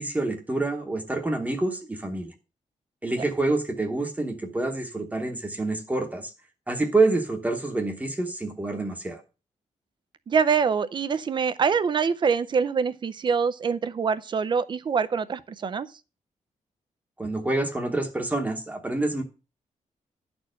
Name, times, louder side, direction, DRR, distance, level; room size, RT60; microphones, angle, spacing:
voice 1, 0.0-2.3 3.0-6.3 6.7-9.2 17.2-19.2, right 2 dB, 10° right, 1.0 m, -27 dB
voice 2, 10.3-15.9, right 6 dB, 35° right, 0.5 m, -25 dB
11.0 x 4.4 x 6.4 m
wide cardioid pair, 180°, 13 cm